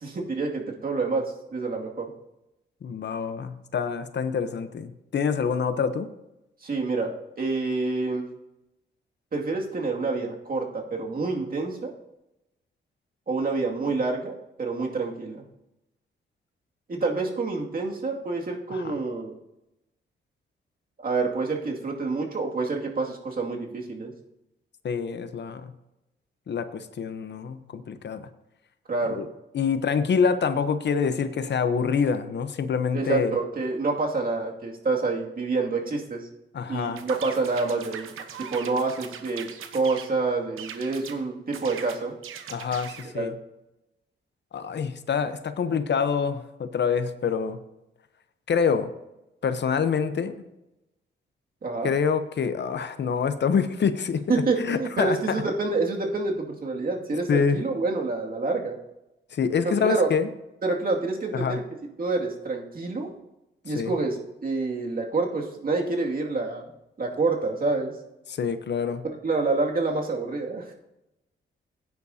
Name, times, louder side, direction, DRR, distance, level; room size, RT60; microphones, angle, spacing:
voice 1, 0.0-2.1 6.6-8.2 9.3-11.9 13.3-15.4 16.9-19.3 21.0-24.1 28.9-29.3 32.9-36.2 36.7-38.1 38.5-39.5 39.7-42.1 43.1-43.3 51.6-51.9 54.3-58.8 59.6-60.1 60.6-61.6 62.0-63.1 63.6-66.7 67.0-67.9 69.0-70.7, right 3 dB, 45° right, 0 dB, 2.3 m, -27 dB
voice 2, 2.8-6.1 18.7-18.8 24.8-25.7 26.5-28.3 29.1-29.3 29.5-33.3 36.5-37.0 42.5-43.3 44.5-47.6 48.5-48.9 49.4-50.3 51.8-54.2 54.6-55.2 57.3-57.6 59.3-60.3 61.3-61.6 63.7-63.9 68.3-69.0, left 6 dB, 60° left, 10 dB, 0.9 m, -26 dB
sound 1, 37.0-40.1 40.6-41.2 41.5-43.1, right 8 dB, 90° right, 1.0 m, -40 dB
16.0 x 9.6 x 2.8 m, 0.93 s
cardioid pair, 75°, 20 cm